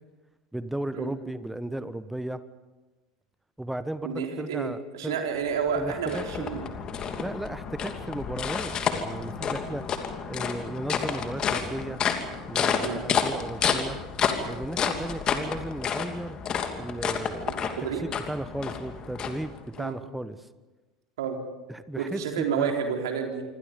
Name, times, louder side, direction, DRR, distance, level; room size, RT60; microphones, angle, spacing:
voice 1, 0.5-2.4 3.6-5.2 5.8-6.5 7.2-9.8 10.3-12.0 12.5-14.0 14.4-16.4 16.7-17.7 18.0-20.5 21.7-22.7, right 1 dB, 5° right, 13 dB, 1.3 m, -35 dB
voice 2, 4.0-6.7 12.8-13.0 17.4-18.0 19.8-20.0 21.2-21.4 22.0-23.4, right 6 dB, 65° right, 3 dB, 3.9 m, -30 dB
sound 1, 5.4-19.9, left 7 dB, 35° left, 2.7 m, -30 dB
27.0 x 25.5 x 5.2 m, 1.2 s
figure-of-eight pair, 75°, 2 cm